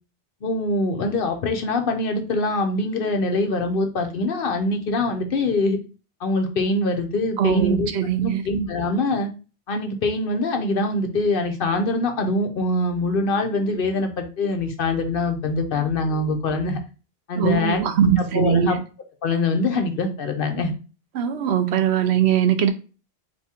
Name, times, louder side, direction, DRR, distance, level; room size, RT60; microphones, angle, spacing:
voice 1, 0.4-5.8 6.2-7.9 8.2-9.3 9.7-16.8 17.3-17.8 18.2-18.8 19.2-20.7, left 2 dB, 60° left, 0.9 m, -23 dB
voice 2, 7.4-8.4 17.4-18.8 21.1-22.7, right 9 dB, 90° right, 0.9 m, -21 dB
3.6 x 2.7 x 4.3 m
omnidirectional pair, 1.1 m